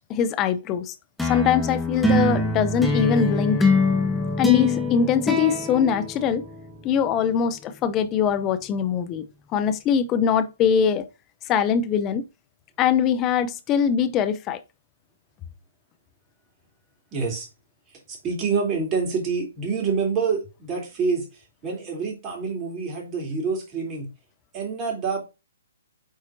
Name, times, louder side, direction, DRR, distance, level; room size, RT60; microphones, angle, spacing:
voice 1, 0.1-0.9 1.2-3.6 4.4-6.4 6.8-9.2 9.5-11.1 11.5-12.3 12.8-14.6, left 7 dB, 25° left, 0.6 m, -22 dB
sound 1, 1.2-6.8, left 2 dB, 5° left, 1.3 m, -23 dB
voice 2, 17.1-17.5 18.1-24.1 24.5-25.2, right 5 dB, 25° right, 3.3 m, -27 dB
8.4 x 4.3 x 2.7 m
figure-of-eight pair, 135°, 0 cm